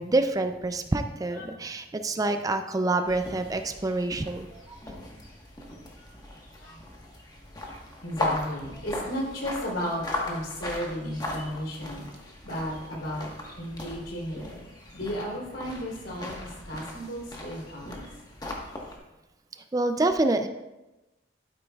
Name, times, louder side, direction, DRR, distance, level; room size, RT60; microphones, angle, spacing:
voice 1, 0.0-4.8 19.7-20.5, right 2 dB, 20° right, 8 dB, 0.4 m, -27 dB
sound 1, 3.1-19.0, left 2 dB, 20° left, 1.2 m, -38 dB
voice 2, 8.0-12.0 12.4-13.3 13.5-14.6 14.9-18.0, equal, 80° left, -3 dB, 3.4 m, -34 dB
12.0 x 9.2 x 2.3 m, 1.0 s
head